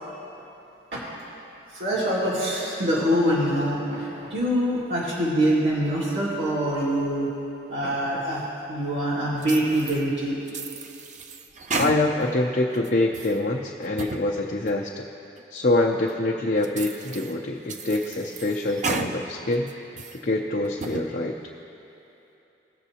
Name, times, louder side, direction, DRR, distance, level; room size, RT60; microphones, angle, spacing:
voice 1, 1.7-7.3 7.7-10.4, equal, 70° right, -9 dB, 2.0 m, -24 dB
sound 1, 9.4-10.0 10.5-12.4 12.8-13.4 13.8-14.2 14.7-14.8 15.4-15.5 16.1-16.2 16.6-17.3 17.7-19.1 19.5-20.2 20.6-21.1, right 3 dB, 40° right, 0.4 m, -33 dB
voice 2, 11.8-15.1 15.5-19.7 20.1-21.4, left 2 dB, 50° left, -2 dB, 0.6 m, -25 dB
19.5 x 7.0 x 2.8 m, 3.0 s
head